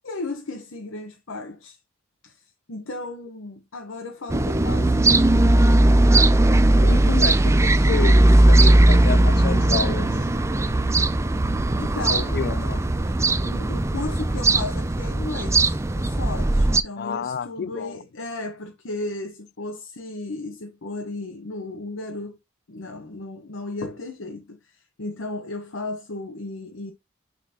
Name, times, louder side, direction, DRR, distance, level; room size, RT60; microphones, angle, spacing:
voice 1, 0.0-1.8 2.2-5.2 11.8-12.5 13.1-13.2 13.4-22.4 22.7-26.9, left 2 dB, 80° left, 1.0 m, -35 dB
sound 1, 4.3-16.8, right 1 dB, 15° right, 0.4 m, -18 dB
voice 2, 6.8-8.2 8.5-10.1 12.1-12.8 17.0-18.0, left 6 dB, 50° left, 0.3 m, -30 dB
9.4 x 3.9 x 2.9 m
head